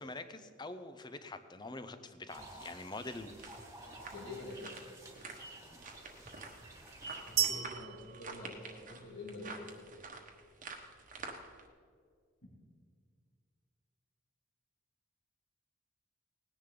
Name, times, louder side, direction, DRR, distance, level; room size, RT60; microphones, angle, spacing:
voice 1, 0.0-3.3, left 2 dB, 20° left, 10 dB, 0.6 m, -45 dB
sound 1, 2.3-7.5, right 2 dB, 15° right, 1.7 m, -51 dB
sound 2, 3.2-11.6, right 4 dB, 40° right, 1.2 m, -49 dB
voice 2, 4.1-4.9 7.3-9.9, left 2 dB, 85° left, -4 dB, 2.3 m, -46 dB
sound 3, 7.4-9.3, right 10 dB, 85° right, 0.8 m, -36 dB
18.5 x 10.0 x 3.8 m, 2.1 s
head